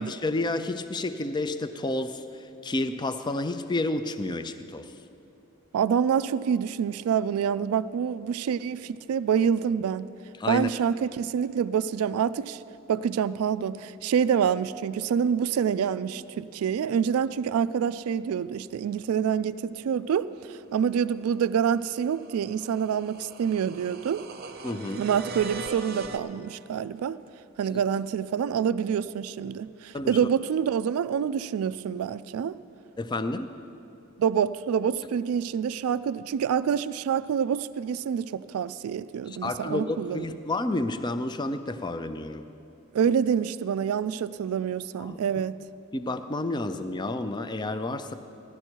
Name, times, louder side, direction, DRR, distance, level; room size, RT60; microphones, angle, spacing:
voice 1, 0.0-2.2 2.6-4.9 10.4-10.7 24.6-25.0 27.7-27.8 29.9-30.2 33.0-33.5 39.3-42.5 45.0-45.2 45.9-48.1, left 2 dB, 20° left, 0.4 m, -30 dB
voice 2, 5.7-10.1 10.5-12.6 12.9-24.2 25.0-27.2 27.6-32.6 34.2-40.3 42.9-45.6, right 7 dB, 85° right, 0.3 m, -27 dB
sound 1, 21.4-26.2, right 3 dB, 45° right, 0.7 m, -40 dB
16.0 x 12.0 x 4.5 m
head